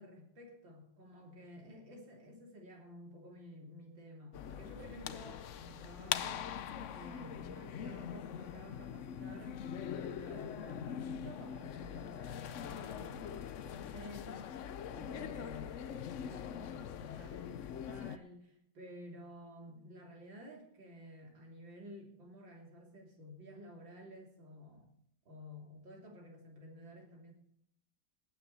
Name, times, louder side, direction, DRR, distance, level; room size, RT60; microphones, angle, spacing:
voice 1, 0.0-24.9 25.3-27.3, left 1 dB, 90° right, 0 dB, 3.7 m, -52 dB
sound 1, 4.3-18.2, left 9 dB, 70° left, 0.7 m, -42 dB
18.0 x 9.9 x 4.1 m, 0.72 s
omnidirectional pair, 2.0 m